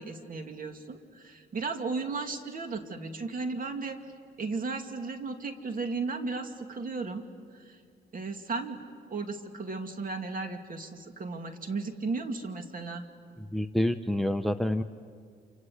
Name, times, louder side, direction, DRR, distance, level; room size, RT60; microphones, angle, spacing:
voice 1, 0.0-4.0 4.4-7.2 7.5-7.8 8.1-8.8 9.1-13.1, right 4 dB, 45° right, 6 dB, 2.5 m, -35 dB
voice 2, 13.5-14.8, left 1 dB, ahead, 10 dB, 0.8 m, -27 dB
28.0 x 26.0 x 8.1 m, 2.1 s
cardioid pair, 90°, 20 cm